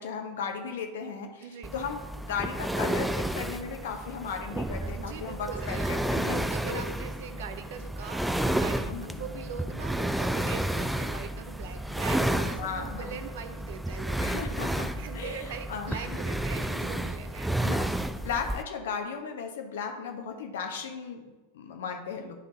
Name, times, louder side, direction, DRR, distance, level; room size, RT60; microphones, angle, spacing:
voice 1, 0.0-6.9 8.8-9.2 12.6-13.2 14.2-16.1 16.5-17.1 17.6-22.3, left 6 dB, 60° left, 4 dB, 1.0 m, -36 dB
voice 2, 1.4-1.7 4.8-8.9 9.2-14.5 15.0-17.5, right 7 dB, 55° right, 9 dB, 0.7 m, -42 dB
sound 1, 1.6-18.6, right 1 dB, 5° right, 0.3 m, -31 dB
11.0 x 3.9 x 3.9 m, 1.2 s
figure-of-eight pair, 90°, 0 cm